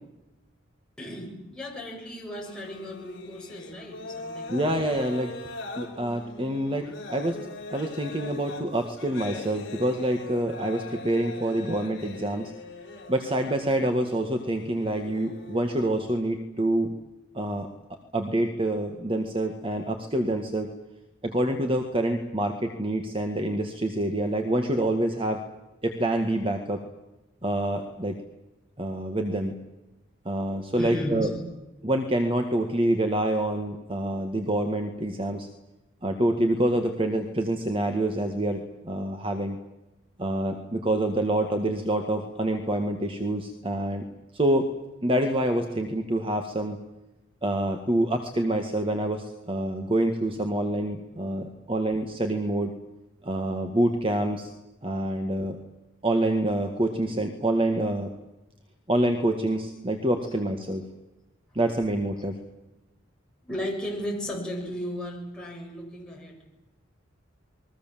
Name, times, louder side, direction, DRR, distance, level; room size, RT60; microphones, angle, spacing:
voice 1, 1.0-4.6 30.8-31.4 63.4-66.4, equal, 5° left, -3 dB, 7.3 m, -35 dB
sound 1, 2.4-15.9, left 3 dB, 60° left, 6.1 m, -41 dB
voice 2, 4.5-5.4 5.8-12.5 13.1-16.9 17.3-17.7 18.1-20.7 21.2-25.4 25.8-26.8 27.4-28.2 28.8-29.5 30.3-31.3 31.8-35.5 36.0-39.6 40.2-44.0 44.3-44.7 45.0-46.8 47.4-52.7 53.2-54.5 54.8-55.6 56.0-58.1 58.9-60.8 61.6-62.3, right 1 dB, 25° right, 5 dB, 1.8 m, -26 dB
28.5 x 22.0 x 7.5 m, 0.97 s
head